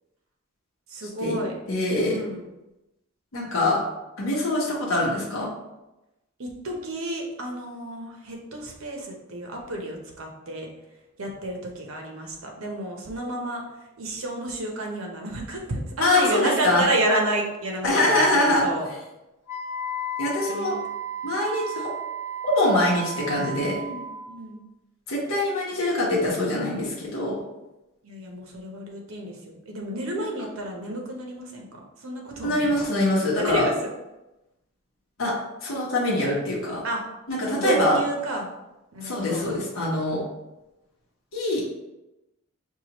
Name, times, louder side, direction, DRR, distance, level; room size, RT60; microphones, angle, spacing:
voice 1, 0.9-1.5 2.0-2.4 6.4-10.7 11.2-13.6 14.0-18.9 20.5-20.8 23.7-24.6 28.0-32.7 33.4-33.7 36.8-37.0 37.5-38.5 38.9-39.4, right 1 dB, 85° right, 1 dB, 0.8 m, -30 dB
voice 2, 1.7-2.2 3.3-3.8 4.2-5.5 16.0-16.8 17.8-18.6 20.2-20.8 21.2-21.9 22.4-23.8 25.1-27.4 30.2-30.3 32.4-33.7 35.2-35.4 35.6-36.8 37.3-38.0 39.0-40.2 41.3-41.6, left 1 dB, 80° left, -4 dB, 0.9 m, -24 dB
Wind instrument woodwind instrument, 19.5-24.3, right 2 dB, 15° right, 0.8 m, -33 dB
4.7 x 2.4 x 2.9 m, 0.97 s
head